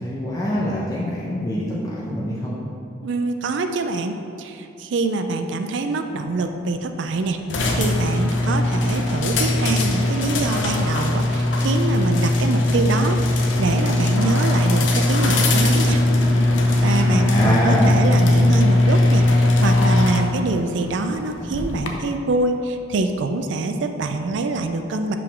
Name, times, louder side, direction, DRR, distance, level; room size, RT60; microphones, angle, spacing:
voice 1, 0.0-2.6 17.1-17.9, equal, 20° left, -7 dB, 0.7 m, -24 dB
voice 2, 3.0-16.0 16.7-25.2, right 3 dB, 65° right, 6 dB, 0.4 m, -25 dB
sound 1, 7.5-21.9, left 2 dB, 70° left, 0.6 m, -19 dB
5.0 x 3.7 x 5.7 m, 2.7 s
head